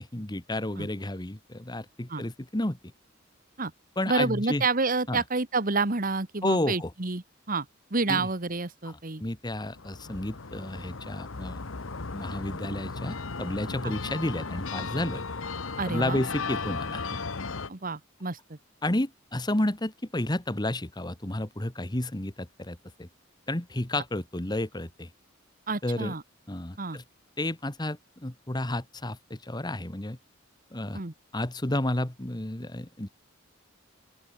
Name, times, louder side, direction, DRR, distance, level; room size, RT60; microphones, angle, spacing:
voice 1, 0.0-2.8 4.0-4.6 5.1-5.2 6.4-6.9 8.1-8.3 9.2-11.6 12.1-15.2 15.8-17.2 18.8-23.1 23.5-25.1 25.8-26.1 26.5-27.0 27.4-30.2 30.7-31.0 31.3-33.1, left 1 dB, 20° left, 1.4 m, -31 dB
voice 2, 4.1-7.6 7.9-9.2 13.8-13.9 15.8-16.2 17.7-18.6 25.7-26.2 26.8-27.0 30.9-31.1, right 3 dB, 45° right, 1.5 m, -29 dB
sound 1, 9.6-17.7, left 4 dB, 75° left, 1.3 m, -36 dB
open air
head